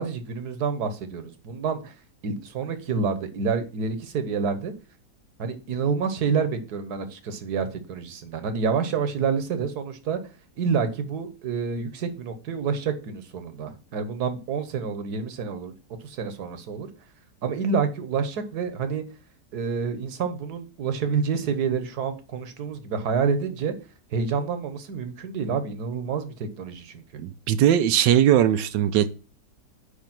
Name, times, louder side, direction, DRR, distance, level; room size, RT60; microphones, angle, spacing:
voice 1, 0.0-1.9 2.2-4.7 5.4-10.2 10.6-15.7 16.0-16.9 17.4-19.0 19.5-23.7 24.1-27.0, right 5 dB, 65° right, 1.5 m, -28 dB
voice 2, 27.2-29.1, right 10 dB, 80° right, 1.3 m, -19 dB
9.8 x 3.4 x 6.0 m
omnidirectional pair, 1.9 m